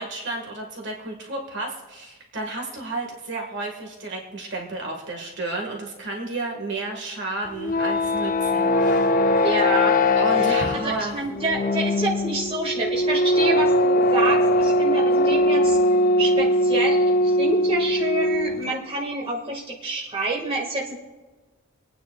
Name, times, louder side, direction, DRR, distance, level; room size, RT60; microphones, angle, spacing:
voice 1, 0.0-9.1 10.2-11.2, right 2 dB, 55° right, 1 dB, 1.7 m, -32 dB
sound 1, 7.5-18.7, left 1 dB, 40° left, 0.5 m, -21 dB
voice 2, 9.4-10.0 10.3-15.8 16.2-21.0, right 2 dB, 25° right, -3 dB, 1.8 m, -28 dB
27.0 x 9.3 x 2.3 m, 1.3 s
head